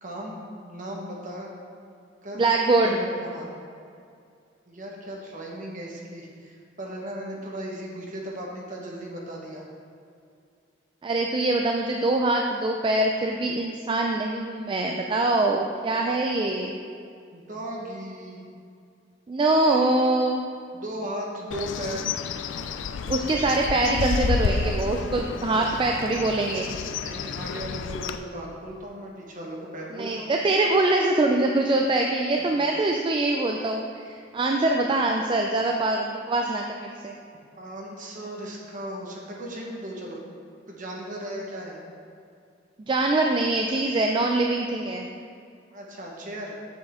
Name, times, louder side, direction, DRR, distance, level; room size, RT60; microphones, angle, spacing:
voice 1, 0.0-0.4 0.6-1.5 2.2-2.4 2.8-3.6 4.7-9.6 17.3-18.4 20.7-22.1 26.9-30.3 37.6-40.2 40.7-41.8 45.7-46.5, right 1 dB, 45° right, -2 dB, 1.2 m, -36 dB
voice 2, 2.3-3.0 11.0-16.8 19.3-20.4 23.1-26.7 29.9-37.2 42.9-45.1, right 2 dB, 25° right, 2 dB, 0.3 m, -24 dB
Bird, 21.5-28.2, left 5 dB, 70° left, 0.4 m, -30 dB
7.3 x 6.2 x 3.6 m, 2.4 s
head